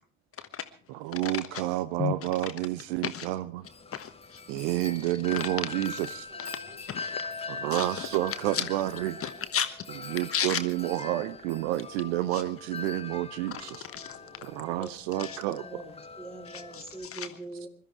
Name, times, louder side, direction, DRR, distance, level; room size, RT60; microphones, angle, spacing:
voice 1, 0.9-3.7 4.5-6.3 7.5-9.2 10.1-13.9 14.4-15.7, right 15 dB, 60° right, 16 dB, 0.8 m, -30 dB
Wind chime, 3.6-17.1, left 5 dB, 15° left, 1.1 m, -42 dB
voice 2, 3.9-4.4 6.4-7.3 7.7-8.0 8.5-8.6 9.2-9.7 10.0-10.6 12.3-12.4 13.9-14.2 15.2-15.4 16.5-17.3, left 8 dB, 35° left, 10 dB, 1.3 m, -33 dB
sound 1, 6.2-6.7 7.5-10.4 10.8-12.3 13.5-14.8, equal, 75° right, 7.3 m, -53 dB
voice 3, 14.7-17.7, right 2 dB, 15° right, 3 dB, 4.2 m, -43 dB
22.0 x 13.0 x 4.7 m, 0.40 s
figure-of-eight pair, 60°, 39 cm